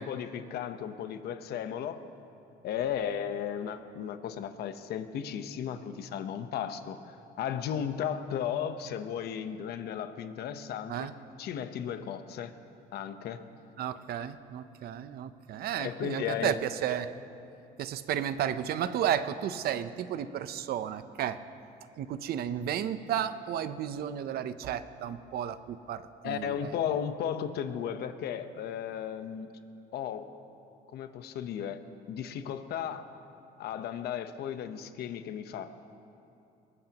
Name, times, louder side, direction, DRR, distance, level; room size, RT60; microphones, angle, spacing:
voice 1, 0.0-2.0 2.6-11.1 11.4-12.5 12.9-13.4 15.8-16.6 26.2-29.5 29.9-30.3 30.9-31.8 32.1-33.0 33.6-35.7, left 9 dB, 70° left, 9 dB, 1.0 m, -35 dB
voice 2, 13.8-17.1 17.8-21.4 22.0-26.7, right 10 dB, 65° right, 12 dB, 0.7 m, -33 dB
22.5 x 20.0 x 3.0 m, 2.8 s
cardioid pair, 110°, 17 cm